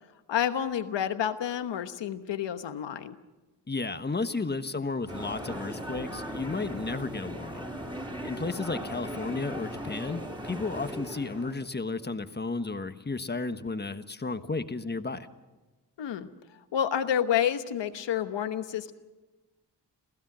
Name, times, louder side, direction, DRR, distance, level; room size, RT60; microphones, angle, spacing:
voice 1, 0.3-3.2 16.0-16.3 16.7-18.9, left 9 dB, 90° left, 10 dB, 1.2 m, -29 dB
voice 2, 3.7-7.7 8.2-15.3, left 3 dB, 25° left, 10 dB, 1.2 m, -33 dB
sound 1, 5.1-11.5, equal, 10° right, 4.4 m, -38 dB
28.5 x 15.5 x 6.1 m, 1.2 s
cardioid pair, 65°, 42 cm